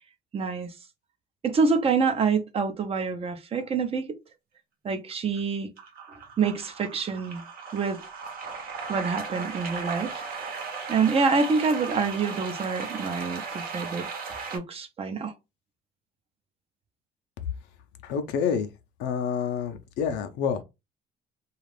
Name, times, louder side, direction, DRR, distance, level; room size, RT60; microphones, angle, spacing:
voice 1, 0.3-0.7 1.4-4.1 4.8-5.7 6.4-7.4 7.7-8.0 8.9-10.6 10.9-14.1 14.5-15.3, right 5 dB, 35° right, 0.6 m, -26 dB
sound 1, 5.1-5.4 5.8-14.6, right 5 dB, 60° right, 0.9 m, -36 dB
voice 2, 18.0-18.7 19.0-20.6, left 7 dB, 90° left, 0.5 m, -28 dB
2.4 x 2.4 x 3.2 m
cardioid pair, 110°, 17 cm